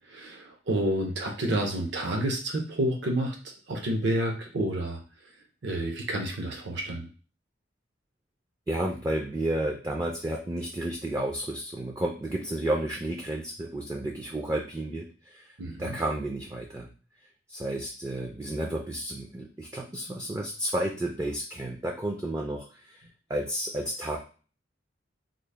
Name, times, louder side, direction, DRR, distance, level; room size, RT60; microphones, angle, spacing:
voice 1, 0.1-3.4 3.7-5.0 5.6-7.1 15.6-16.0, right 1 dB, 60° right, 2 dB, 0.6 m, -29 dB
voice 2, 8.7-15.5 15.8-16.9 17.5-23.0 23.3-24.2, right 1 dB, 15° right, 1 dB, 0.3 m, -31 dB
3.8 x 2.0 x 3.2 m, 0.37 s
head